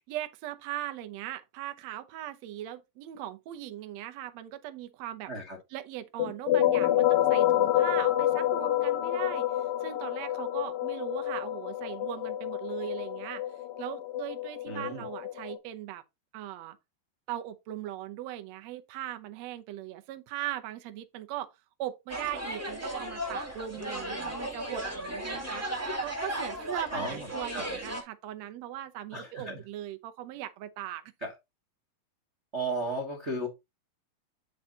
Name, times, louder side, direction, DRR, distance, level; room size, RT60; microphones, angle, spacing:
voice 1, 0.1-5.3 5.7-9.5 9.8-13.4 13.8-16.0 16.3-16.8 17.3-21.5 21.8-25.6 26.0-31.0, right 13 dB, 85° right, 1.5 m, -39 dB
sound 1, 6.2-15.6, left 13 dB, 75° left, 2.5 m, -28 dB
voice 2, 14.7-15.0 26.9-27.7 29.1-29.6 31.2-31.3 32.5-33.5, right 2 dB, 60° right, 0.7 m, -35 dB
sound 2, 22.1-28.0, right 1 dB, 20° right, 0.3 m, -35 dB
8.6 x 6.1 x 2.9 m
omnidirectional pair, 4.4 m